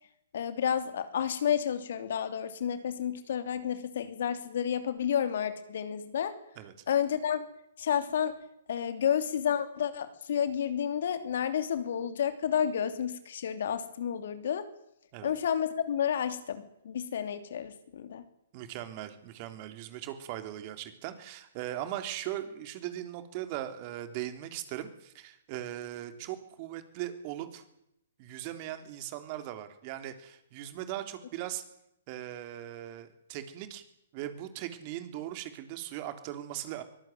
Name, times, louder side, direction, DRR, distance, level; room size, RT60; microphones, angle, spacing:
voice 1, 0.3-6.3 6.9-7.4 7.8-8.3 8.7-14.7 15.2-18.2, left 8 dB, 65° left, 10 dB, 2.8 m, -30 dB
voice 2, 18.5-27.6 28.2-31.6 32.1-33.8 34.1-36.8, right 13 dB, 40° right, 9 dB, 3.5 m, -39 dB
24.0 x 19.0 x 9.4 m, 0.80 s
hypercardioid pair, 130°, 0 cm